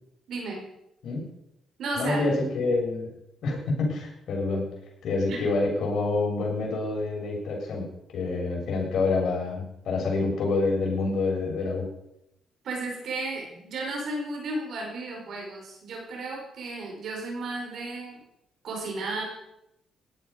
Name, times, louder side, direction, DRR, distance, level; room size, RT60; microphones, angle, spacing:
voice 1, 0.3-0.7 1.8-2.3 5.3-5.4 12.6-18.2 18.6-19.2, right 2 dB, 65° right, 0 dB, 5.2 m, -34 dB
voice 2, 1.9-3.1 3.4-4.6 5.0-7.9 8.1-11.9, left 3 dB, 70° left, -2 dB, 6.7 m, -27 dB
18.0 x 12.0 x 5.3 m, 0.84 s
cardioid pair, 90°, 0 cm